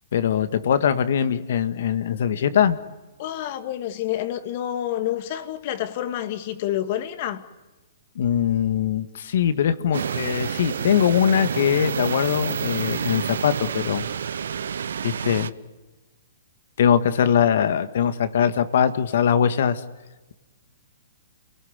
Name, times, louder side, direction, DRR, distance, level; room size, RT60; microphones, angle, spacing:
voice 1, 0.1-2.8 8.2-14.0 15.0-15.5 16.8-19.8, left 8 dB, 65° left, 1.7 m, -21 dB
voice 2, 3.2-7.4, left 12 dB, 50° left, 2.2 m, -28 dB
sound 1, 9.9-15.5, right 7 dB, 75° right, 0.8 m, -29 dB
29.0 x 18.5 x 9.7 m
hypercardioid pair, 130°, 0 cm